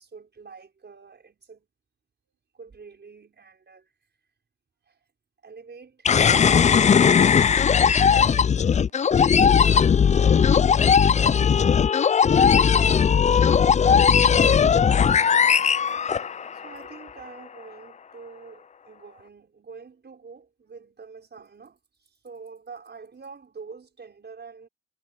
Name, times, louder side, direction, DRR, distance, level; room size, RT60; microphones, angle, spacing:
voice 1, 0.0-1.7 2.5-3.9 4.9-5.0 5.4-7.6 14.4-15.5 15.8-16.0 16.5-24.7, right 5 dB, 35° right, 5.4 m, -46 dB
sound 1, 6.1-16.7, left 7 dB, 25° left, 0.4 m, -18 dB
voice 2, 8.0-9.3 9.5-14.9 21.4-21.5, right 11 dB, 75° right, 4.7 m, -59 dB
cardioid pair, 90°, 30 cm